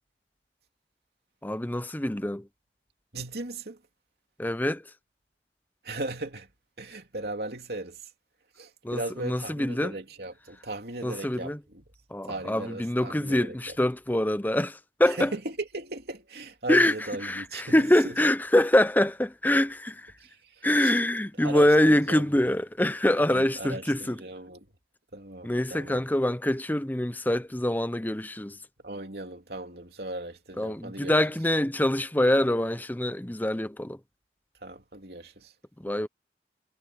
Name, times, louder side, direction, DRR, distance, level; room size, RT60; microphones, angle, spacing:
voice 1, 1.4-2.5 4.4-4.9 8.8-9.9 11.0-11.6 12.1-15.3 16.7-16.9 17.2-20.1 20.6-24.2 25.4-28.6 30.6-34.0 35.8-36.1, left 1 dB, 10° left, 0.7 m, -25 dB
voice 2, 3.1-3.8 5.8-6.5 6.8-8.1 8.6-11.8 12.3-13.8 15.1-18.2 20.2-21.0 21.4-22.3 23.3-24.7 25.1-26.0 28.8-31.1 34.6-35.5, right 2 dB, 60° right, 3.3 m, -37 dB
head